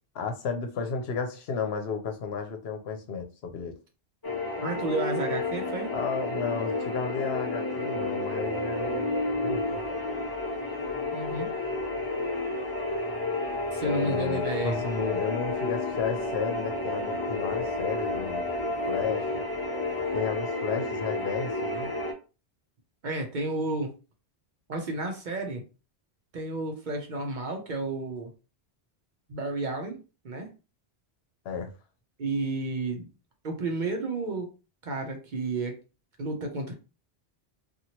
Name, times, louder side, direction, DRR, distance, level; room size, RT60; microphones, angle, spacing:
voice 1, 0.1-3.8 5.9-9.1 9.4-9.8 13.8-18.5 18.9-19.2 20.1-21.9 31.4-31.7, left 5 dB, 75° left, 0.9 m, -33 dB
sound 1, 4.2-22.1, left 2 dB, 25° left, 0.6 m, -31 dB
voice 2, 4.6-5.9 11.1-11.5 13.7-14.8 23.0-23.9 24.7-25.6 26.3-28.3 29.3-30.0 30.2-30.5 32.2-33.1 33.4-34.5 34.8-35.8 36.2-36.7, right 2 dB, 50° right, 0.7 m, -31 dB
2.9 x 2.4 x 2.8 m
omnidirectional pair, 1.1 m